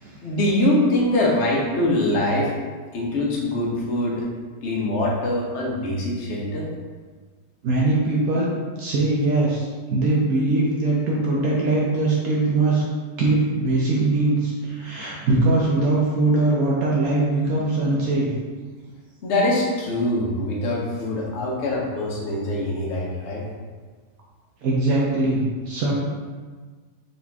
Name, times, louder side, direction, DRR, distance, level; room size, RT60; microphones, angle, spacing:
voice 1, 0.2-2.5 2.9-4.3 4.6-6.7 19.2-23.5, left 1 dB, 50° left, -3 dB, 0.9 m, -23 dB
voice 2, 7.6-8.5 8.8-12.8 13.2-18.3 24.6-25.9, right 2 dB, 65° right, -4 dB, 1.0 m, -21 dB
4.1 x 3.0 x 3.4 m, 1.5 s
omnidirectional pair, 1.8 m